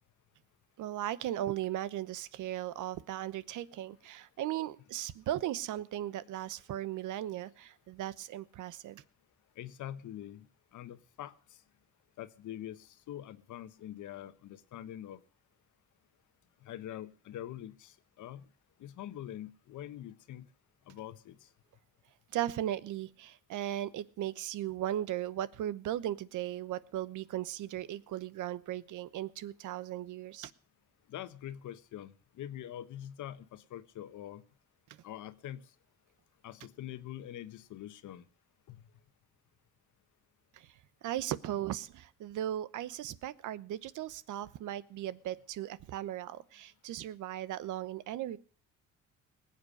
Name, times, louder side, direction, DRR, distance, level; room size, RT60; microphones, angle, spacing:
voice 1, 0.8-9.0 22.3-30.5 41.0-48.4, right 12 dB, 80° right, 17 dB, 1.0 m, -37 dB
voice 2, 9.6-10.5 10.7-11.3 12.2-15.2 16.6-18.5 18.8-20.5 20.9-21.5 31.1-34.4 35.0-35.7 36.4-38.2 38.7-38.9, left 12 dB, 75° left, 13 dB, 1.2 m, -44 dB
20.0 x 8.1 x 6.5 m, 0.41 s
cardioid pair, 90°, 30 cm